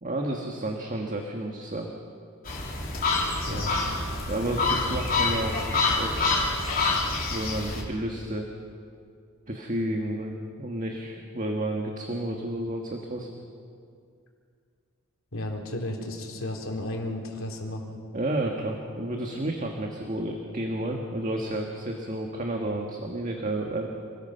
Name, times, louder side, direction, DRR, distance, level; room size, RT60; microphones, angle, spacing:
voice 1, 0.0-1.9 3.5-3.6 4.0-6.5 7.3-8.5 9.5-10.3 10.6-13.3 18.1-23.9, right 1 dB, 35° right, 1 dB, 1.6 m, -31 dB
sound 1, 2.5-7.8, left 3 dB, 45° left, 3.7 m, -27 dB
voice 2, 3.3-3.8 15.3-18.0, left 1 dB, 70° left, 1 dB, 3.5 m, -34 dB
28.5 x 20.0 x 5.7 m, 2.3 s
head